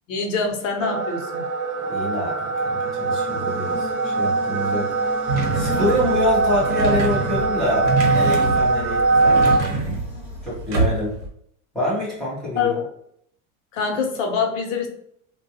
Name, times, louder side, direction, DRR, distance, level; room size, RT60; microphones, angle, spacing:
voice 1, 0.1-1.4 12.6-12.8 13.7-14.9, left 5 dB, 75° left, 2 dB, 0.8 m, -24 dB
sound 1, 0.8-9.6, right 3 dB, 75° right, 0.6 m, -22 dB
voice 2, 1.9-9.6 10.4-11.2 11.7-12.7, left 1 dB, ahead, -10 dB, 0.3 m, -26 dB
Buzz, 2.6-10.8, left 3 dB, 30° left, 0.6 m, -37 dB
sound 2, 5.3-11.3, right 3 dB, 40° right, 0.8 m, -26 dB
3.4 x 2.2 x 2.6 m, 0.69 s
supercardioid pair, 180°, 38 cm